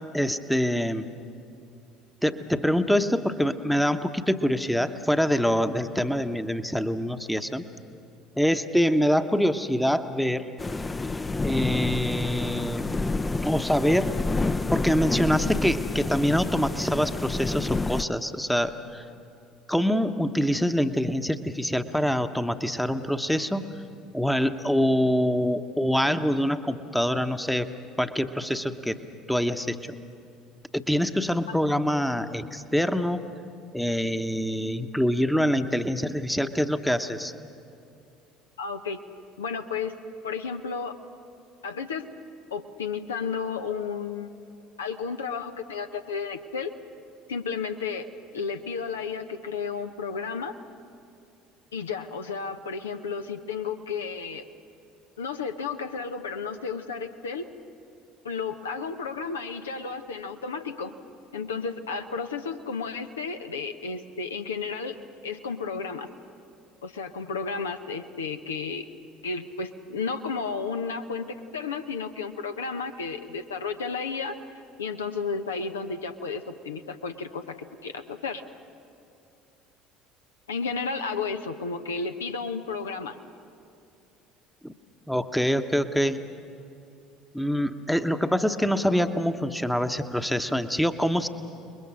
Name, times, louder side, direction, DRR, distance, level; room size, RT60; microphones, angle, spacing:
voice 1, 0.1-1.1 2.2-7.7 8.4-10.5 11.4-12.8 13.4-14.1 14.7-19.0 19.7-23.7 24.1-27.7 28.0-29.0 29.3-29.8 30.7-33.2 33.7-37.3 84.6-84.7 85.1-86.2 87.3-91.3, equal, ahead, 9 dB, 1.0 m, -25 dB
sound 1, 10.6-18.0, left 3 dB, 20° left, 0.6 m, -29 dB
voice 2, 38.6-39.0 39.4-39.9 40.2-41.0 41.6-42.0 42.5-44.3 44.8-46.7 47.3-48.1 48.3-50.5 51.7-54.4 55.2-57.4 58.2-60.9 61.3-65.0 65.2-66.1 66.8-68.9 69.2-74.3 74.8-77.6 77.8-78.4 80.5-83.2, left 5 dB, 75° left, 7 dB, 0.8 m, -32 dB
29.5 x 21.5 x 6.3 m, 2.5 s
figure-of-eight pair, 60°, 0 cm